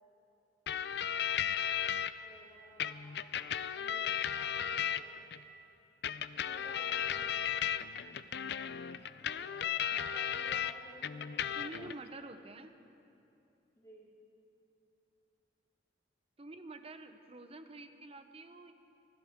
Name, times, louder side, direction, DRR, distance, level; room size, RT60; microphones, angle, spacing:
sound 1, 0.7-2.1 2.8-5.4 6.0-10.7 11.0-11.9, left 9 dB, 65° left, 0.4 m, -35 dB
voice 1, 2.2-3.2 3.7-5.2 6.4-7.7 9.4-11.9 13.7-14.0, left 1 dB, 20° left, -9 dB, 2.8 m, -55 dB
voice 2, 11.5-12.7 16.4-18.7, right 2 dB, 35° right, 8 dB, 0.8 m, -48 dB
24.0 x 16.0 x 3.7 m, 2.8 s
head